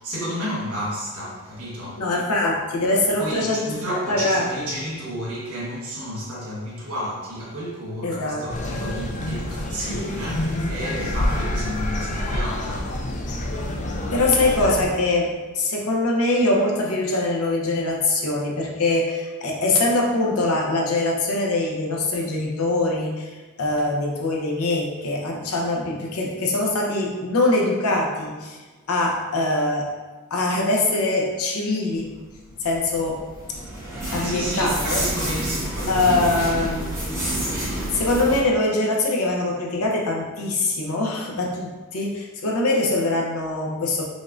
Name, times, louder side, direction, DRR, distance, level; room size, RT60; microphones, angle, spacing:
voice 1, 0.0-2.1 3.2-13.0 34.2-36.5, equal, 70° right, -6 dB, 1.2 m, -31 dB
voice 2, 2.0-3.7 4.1-4.6 8.0-8.4 8.8-8.9 14.1-28.6 28.9-29.9 30.3-32.1 32.6-33.2 34.1-35.0 35.9-37.3 37.9-44.0, left 2 dB, 70° left, -1 dB, 0.7 m, -23 dB
sound 1, 8.5-14.9, left 1 dB, 35° left, 0.4 m, -27 dB
sound 2, 32.5-38.4, right 1 dB, 10° right, 0.9 m, -29 dB
5.1 x 2.5 x 2.4 m, 1.3 s
head